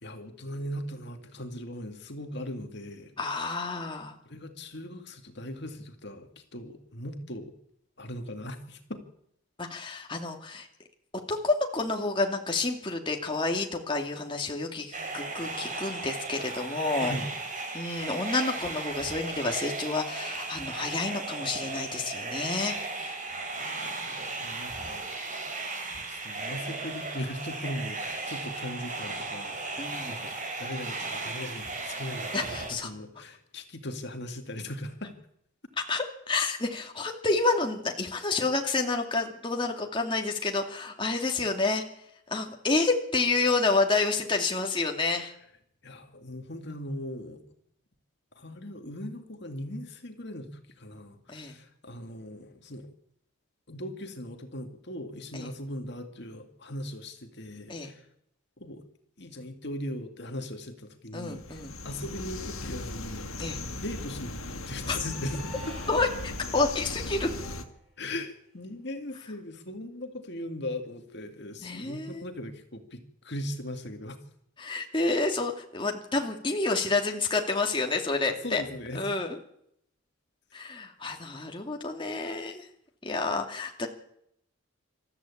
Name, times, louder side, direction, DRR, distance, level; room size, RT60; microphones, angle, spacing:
voice 1, 0.0-3.1 4.3-7.5 8.0-9.0 17.0-17.3 23.8-25.1 26.0-35.2 45.8-47.4 48.4-52.9 53.7-58.1 58.6-58.8 59.2-65.7 68.0-74.2 78.3-79.1, left 1 dB, 50° left, 6 dB, 2.2 m, -39 dB
voice 2, 3.2-4.1 9.6-10.7 11.3-17.1 17.7-22.8 23.0-23.2 29.8-30.2 32.3-32.9 35.9-41.8 42.3-45.3 51.3-51.5 55.3-55.5 57.7-57.9 61.1-61.7 63.4-63.6 64.9-65.0 65.9-67.3 71.6-72.2 74.6-78.6 78.9-79.4 80.5-82.7 83.0-83.9, left 3 dB, 25° left, 2 dB, 2.3 m, -29 dB
sound 1, 14.9-32.7, right 3 dB, 35° right, 4.7 m, -36 dB
sound 2, 61.3-67.6, left 2 dB, 90° left, 2.2 m, -38 dB
sound 3, 64.6-67.8, left 1 dB, ahead, 7.8 m, -48 dB
27.0 x 14.0 x 8.5 m, 0.74 s
head